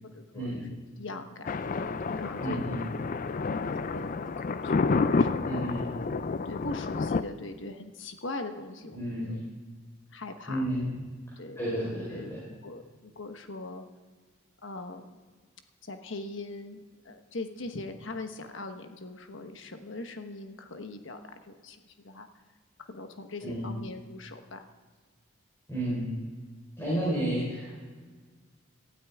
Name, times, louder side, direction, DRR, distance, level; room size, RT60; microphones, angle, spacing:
voice 1, 0.0-0.6 1.0-3.1 3.4-5.5 6.4-9.4 10.1-10.6 11.4-12.4 12.6-13.8 14.6-15.1 15.8-22.3 22.8-24.7 26.8-26.9, left 2 dB, 60° left, 6 dB, 1.2 m, -41 dB
Thunder, 1.5-7.2, left 4 dB, 40° left, 0.4 m, -29 dB
voice 2, 2.4-2.8 5.4-5.8 8.9-9.3 10.5-10.9 11.6-12.4 23.4-23.6 25.7-26.2 26.8-27.9, right 1 dB, 15° left, -8 dB, 4.3 m, -31 dB
18.5 x 12.5 x 3.6 m, 1.5 s
head